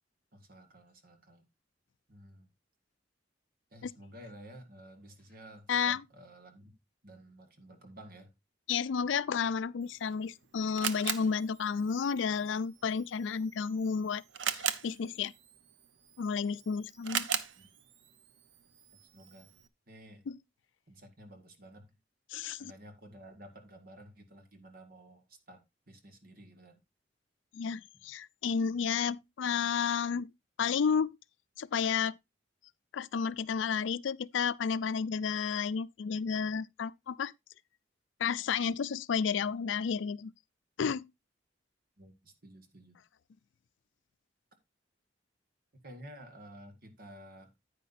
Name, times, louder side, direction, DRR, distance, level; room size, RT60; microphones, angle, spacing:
voice 1, 0.3-1.5 2.1-2.5 3.7-6.8 7.0-8.3 17.6-17.7 18.9-19.5 19.9-20.3 20.9-21.9 22.4-26.8 42.0-43.0 45.8-47.5, right 1 dB, 50° right, 1.8 m, -53 dB
voice 2, 5.7-6.0 8.7-14.2 14.5-15.3 16.2-17.3 20.3-20.4 22.3-22.7 27.5-30.3 30.6-31.1 31.6-32.1 32.9-37.3 38.2-40.3 40.8-41.1, left 6 dB, 85° left, 0.4 m, -31 dB
Camera, 9.8-19.7, right 8 dB, 75° right, 0.7 m, -40 dB
9.7 x 9.2 x 2.6 m
head